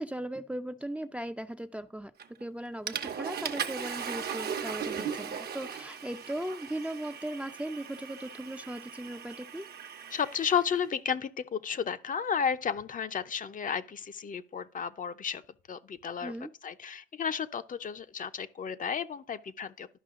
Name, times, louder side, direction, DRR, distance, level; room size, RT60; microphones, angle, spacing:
voice 1, 0.0-2.1 2.4-9.7 16.2-16.5, right 1 dB, 5° right, 0.5 m, -38 dB
Water / Toilet flush, 2.2-2.5 2.9-10.7, right 7 dB, 50° right, 1.0 m, -38 dB
voice 2, 10.1-15.4 15.7-16.4 16.6-19.9, left 7 dB, 45° left, 0.6 m, -33 dB
12.0 x 5.4 x 3.7 m
cardioid pair, 90°, 20 cm